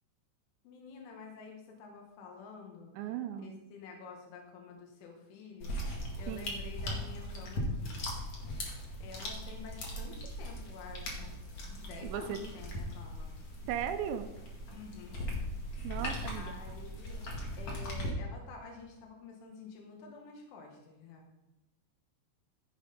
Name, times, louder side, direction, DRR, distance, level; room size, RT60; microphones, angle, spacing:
voice 1, 0.6-2.9 3.3-8.0 8.5-8.7 9.0-11.4 11.6-13.3 14.7-15.2 15.8-15.9 16.3-17.2 17.6-21.3, left 5 dB, 85° left, 1 dB, 4.2 m, -49 dB
voice 2, 2.9-3.6 6.3-6.5 12.0-12.4 13.7-14.3 15.8-16.5, right 10 dB, 80° right, 8 dB, 2.9 m, -37 dB
sound 1, 5.6-18.1, equal, 45° left, 2.3 m, -39 dB
15.5 x 6.5 x 5.3 m, 1.0 s
omnidirectional pair, 5.5 m